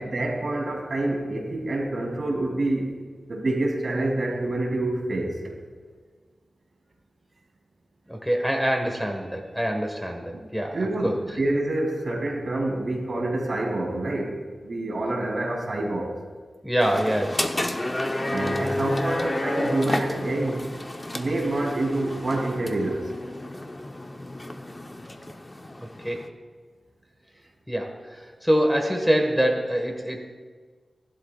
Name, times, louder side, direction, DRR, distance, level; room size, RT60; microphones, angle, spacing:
voice 1, 0.0-2.9 3.3-5.4 10.7-14.4 14.6-16.1 18.3-20.6 21.1-23.0, right 2 dB, 60° right, -1 dB, 3.2 m, -27 dB
voice 2, 8.1-11.1 16.6-17.7 26.0-26.2 27.7-30.2, equal, ahead, 2 dB, 1.6 m, -25 dB
sound 1, 16.8-26.3, left 1 dB, 25° left, 0.9 m, -31 dB
18.5 x 12.0 x 2.5 m, 1.6 s
cardioid pair, 60°, 0 cm